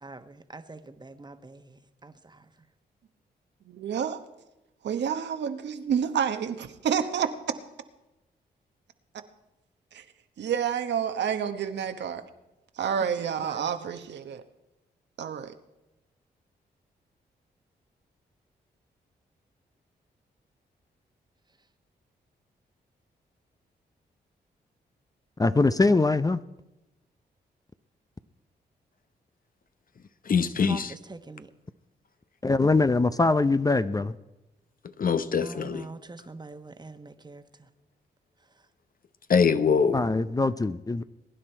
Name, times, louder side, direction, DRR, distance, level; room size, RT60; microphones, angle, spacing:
voice 1, 0.0-2.5 13.0-13.8 30.6-31.5 35.4-37.7, right 3 dB, 25° right, 1.2 m, -44 dB
voice 2, 3.7-4.2 4.8-7.3 9.9-10.0 10.4-12.2 12.8-14.4 15.2-15.5, right 8 dB, 75° right, 1.1 m, -29 dB
voice 3, 25.4-26.4 32.4-34.2 39.9-41.0, left 3 dB, 20° left, 0.5 m, -23 dB
voice 4, 30.2-30.9 35.0-35.9 39.3-40.0, left 6 dB, 50° left, 0.9 m, -23 dB
22.0 x 9.9 x 4.5 m
cardioid pair, 55°, 18 cm